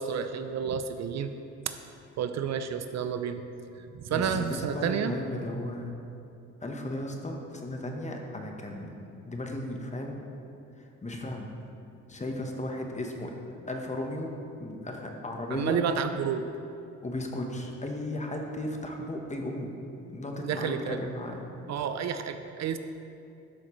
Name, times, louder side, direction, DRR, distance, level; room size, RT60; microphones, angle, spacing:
voice 1, 0.0-1.3 1.7-1.8 2.2-3.4 3.7-5.1 15.5-16.5 20.4-21.0 21.7-22.8, right 7 dB, 60° right, 8 dB, 0.5 m, -30 dB
voice 2, 4.1-6.0 6.6-9.0 9.3-10.2 10.8-11.5 12.1-13.4 13.7-14.3 14.6-15.8 17.0-19.8 20.1-21.5, left 1 dB, 25° left, 2 dB, 1.1 m, -35 dB
11.5 x 6.4 x 3.1 m, 2.6 s
cardioid pair, 90°, 30 cm